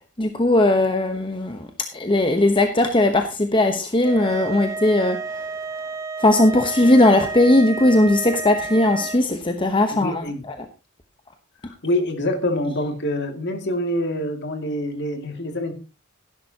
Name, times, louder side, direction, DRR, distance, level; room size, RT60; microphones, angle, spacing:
voice 1, 0.2-5.5 6.2-10.5, left 1 dB, 20° left, 6 dB, 1.0 m, -18 dB
sound 1, 4.0-9.2, right 3 dB, 15° right, 0.6 m, -31 dB
voice 2, 9.9-10.4 11.7-15.7, left 1 dB, 50° left, 5 dB, 2.3 m, -26 dB
16.0 x 11.0 x 2.9 m, 0.30 s
head